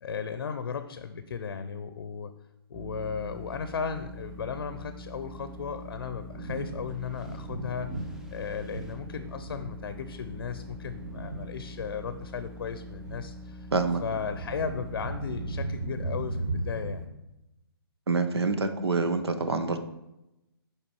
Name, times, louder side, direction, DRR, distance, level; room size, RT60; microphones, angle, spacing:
voice 1, 0.0-2.3 2.7-7.9 8.3-13.7 14.0-17.0, left 6 dB, 60° left, 10 dB, 0.6 m, -35 dB
sound 1, 2.7-15.6, equal, 5° right, 0.4 m, -45 dB
Thunder, 3.4-17.1, right 2 dB, 60° right, 1.2 m, -38 dB
voice 2, 13.7-14.0 18.1-19.8, right 4 dB, 80° right, 9 dB, 0.9 m, -26 dB
7.4 x 4.9 x 4.6 m, 0.93 s
figure-of-eight pair, 140°, 13 cm